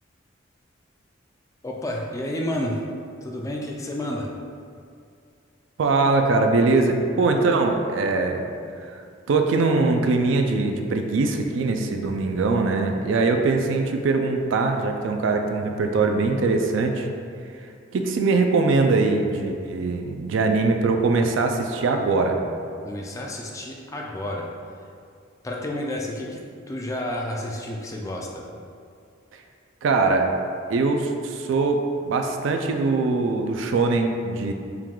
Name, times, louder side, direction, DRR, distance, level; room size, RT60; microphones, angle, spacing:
voice 1, 1.6-2.8 3.2-4.3 22.8-24.5 25.4-26.4 26.7-28.4, left 1 dB, 15° left, -1 dB, 0.3 m, -30 dB
voice 2, 5.8-8.5 8.8-8.9 9.3-17.1 17.9-22.4 29.8-30.3 30.7-34.5, right 3 dB, 65° right, 4 dB, 0.3 m, -22 dB
4.6 x 2.3 x 3.7 m, 2.3 s
head